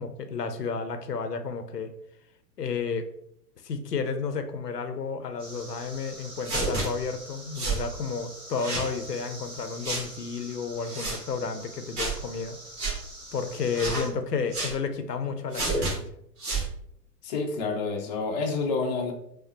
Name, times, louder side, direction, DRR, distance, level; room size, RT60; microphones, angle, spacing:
voice 1, 0.0-1.9 2.6-3.1 3.6-12.6 13.3-16.1, left 5 dB, 75° left, 8 dB, 0.6 m, -32 dB
sound 1, 5.4-14.1, right 1 dB, 10° right, 1.4 m, -45 dB
sound 2, 6.4-6.9 7.5-7.8 8.6-8.9 9.8-10.1 10.8-11.2 12.0-12.2 12.8-13.0 13.7-14.1 14.5-14.7 15.5-15.9 16.4-16.7, right 3 dB, 25° right, 1.4 m, -29 dB
voice 2, 17.2-19.1, left 4 dB, 30° left, 1 dB, 0.5 m, -28 dB
5.1 x 2.0 x 3.0 m, 0.72 s
figure-of-eight pair, 105°, 48 cm